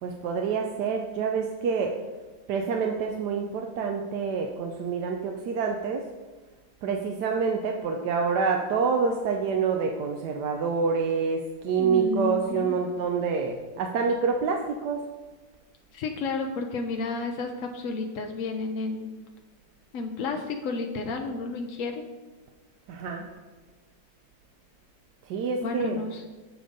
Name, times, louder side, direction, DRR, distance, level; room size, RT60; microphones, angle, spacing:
voice 1, 0.0-2.0 2.5-6.1 6.8-15.0 22.9-23.3 25.3-26.0, right 5 dB, 70° right, 3 dB, 1.1 m, -27 dB
voice 2, 11.8-12.8 15.9-19.1 19.9-22.0 25.6-26.3, left 4 dB, 70° left, 3 dB, 0.8 m, -31 dB
7.8 x 4.9 x 5.2 m, 1.3 s
omnidirectional pair, 2.0 m